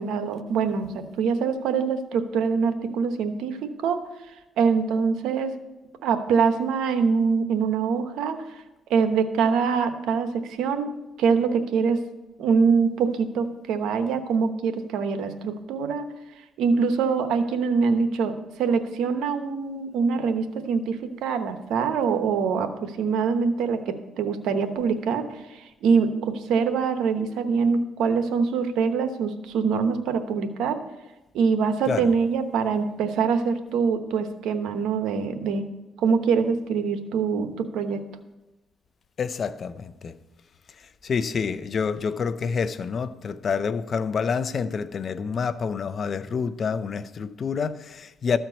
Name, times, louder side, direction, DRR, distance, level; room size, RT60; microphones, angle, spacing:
voice 1, 0.0-4.0 4.6-5.5 6.0-8.6 8.9-12.0 12.4-16.1 16.6-30.8 31.3-35.7 36.0-38.0, right 5 dB, 85° right, 0.9 m, -24 dB
voice 2, 39.2-40.2 40.8-48.4, left 6 dB, 50° left, 0.6 m, -28 dB
13.5 x 4.5 x 8.0 m
cardioid pair, 90°, 0 cm